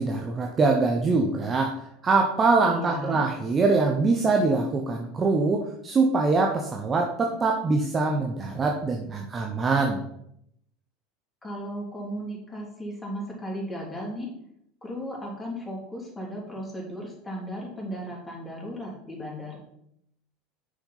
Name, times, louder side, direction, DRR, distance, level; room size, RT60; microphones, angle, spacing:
voice 1, 0.0-10.0, right 3 dB, 25° right, 1 dB, 1.0 m, -23 dB
voice 2, 2.7-3.2 11.4-14.3 14.8-19.6, equal, 10° left, -3 dB, 3.7 m, -35 dB
6.4 x 6.3 x 5.7 m, 0.75 s
figure-of-eight pair, 75°, 0 cm